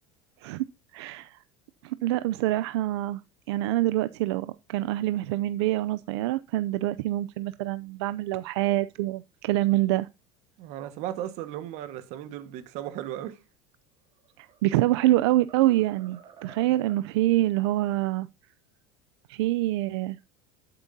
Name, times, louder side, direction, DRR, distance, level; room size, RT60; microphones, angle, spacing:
voice 1, 0.9-1.4 1.8-3.2 3.5-10.1 14.4-18.3 19.3-20.2, right 15 dB, 85° right, 0.5 m, -26 dB
voice 2, 10.6-13.4, right 12 dB, 60° right, 1.5 m, -36 dB
sound 1, 14.1-14.6 15.0-17.1, right 7 dB, 40° right, 2.4 m, -52 dB
12.5 x 7.5 x 2.7 m
supercardioid pair, 135°, 14 cm